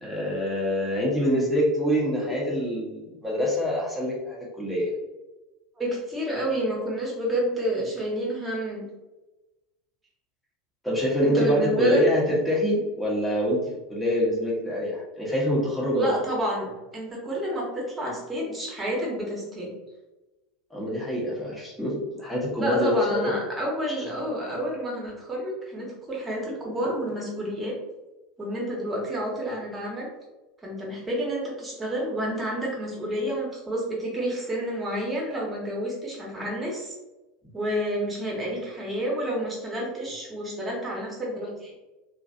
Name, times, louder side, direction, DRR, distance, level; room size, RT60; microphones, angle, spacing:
voice 1, 0.0-4.9 10.8-16.2 20.7-23.3, equal, ahead, -6 dB, 1.2 m, -25 dB
voice 2, 5.8-8.8 11.2-12.0 15.9-19.7 22.6-27.8 28.4-30.1 30.6-37.0 37.5-41.7, right 1 dB, 15° right, -3 dB, 1.2 m, -29 dB
2.9 x 2.6 x 2.6 m, 1.1 s
figure-of-eight pair, 80°, 0 cm